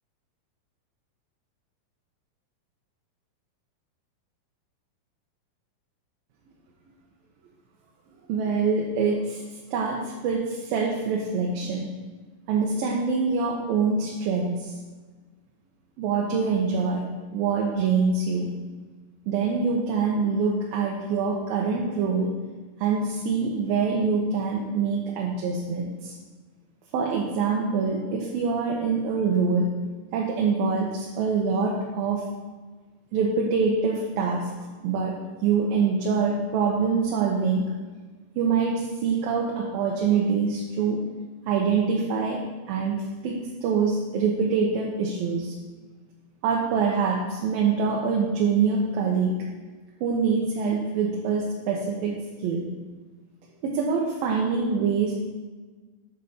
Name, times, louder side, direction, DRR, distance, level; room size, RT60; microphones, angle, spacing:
voice 1, 8.3-9.4 9.7-11.9 12.5-14.8 16.0-17.0 17.3-18.5 19.3-22.3 22.8-26.1 26.9-29.7 30.1-32.3 33.1-34.5 34.8-35.1 35.4-37.7 38.4-41.0 41.5-42.4 42.7-45.6 46.4-49.5 50.0-52.7 53.6-55.1, right 5 dB, 80° right, -2 dB, 2.4 m, -25 dB
7.7 x 4.0 x 5.5 m, 1.3 s
omnidirectional pair, 4.2 m